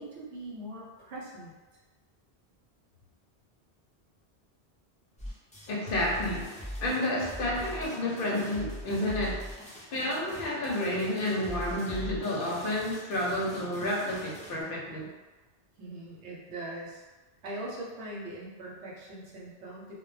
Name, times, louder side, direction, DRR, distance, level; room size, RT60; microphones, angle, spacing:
voice 1, 0.0-1.5 15.8-17.0 17.4-19.9, right 1 dB, 80° right, -4 dB, 0.9 m, -41 dB
Devine Kids Lucille break, 5.2-14.6, equal, 10° left, 0.3 m, -42 dB
voice 2, 5.7-9.5 9.9-15.1, left 1 dB, 60° left, -3 dB, 0.7 m, -30 dB
2.1 x 2.1 x 3.1 m, 1.2 s
omnidirectional pair, 1.1 m